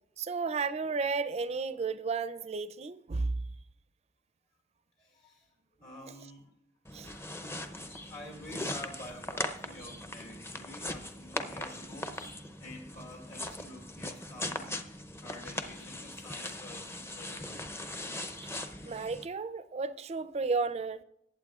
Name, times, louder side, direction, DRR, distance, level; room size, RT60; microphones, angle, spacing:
voice 1, 0.2-3.4 6.9-7.1 18.8-21.0, right 4 dB, 35° right, 0.4 m, -33 dB
voice 2, 5.0-5.5 5.8-6.5 8.1-17.7, left 1 dB, 60° left, 2.3 m, -49 dB
sound 1, 6.8-19.3, left 1 dB, 15° left, 0.6 m, -40 dB
19.0 x 8.7 x 2.4 m
head